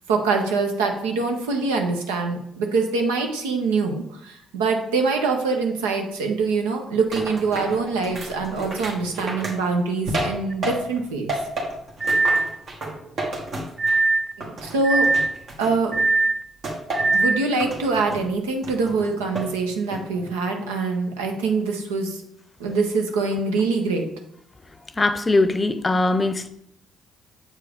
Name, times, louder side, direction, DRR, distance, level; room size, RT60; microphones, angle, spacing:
voice 1, 0.1-11.4 14.4-15.1 15.6-15.9 17.0-22.2 22.6-24.0, right 4 dB, 85° right, 3 dB, 0.8 m, -24 dB
sound 1, 7.1-11.0 11.3-14.1 14.4-16.0 16.6-17.2 17.6-18.2 18.6-19.5 19.9-20.3, right 1 dB, 60° right, 1.6 m, -31 dB
sound 2, 10.5-10.6 12.0-12.5 13.8-14.3 14.8-15.4 15.9-16.4 16.9-17.4, right 3 dB, 40° right, 0.3 m, -20 dB
voice 2, 25.0-26.5, left 2 dB, 25° left, 11 dB, 0.6 m, -21 dB
7.1 x 4.5 x 3.5 m, 0.75 s
hypercardioid pair, 50°, 0 cm